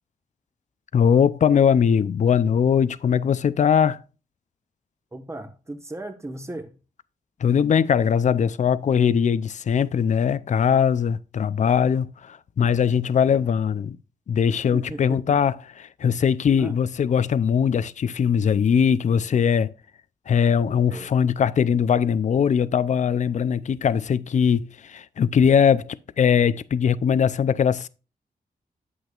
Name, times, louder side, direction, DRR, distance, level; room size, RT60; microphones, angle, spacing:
voice 1, 0.9-4.0 7.4-14.0 14.3-19.7 20.3-27.9, left 7 dB, 55° left, 0.5 m, -21 dB
voice 2, 5.1-6.8 13.3-13.5 14.7-15.4 16.6-16.8 20.9-21.1, right 1 dB, 20° right, 1.2 m, -36 dB
9.3 x 7.9 x 2.4 m
cardioid pair, 85°, 15 cm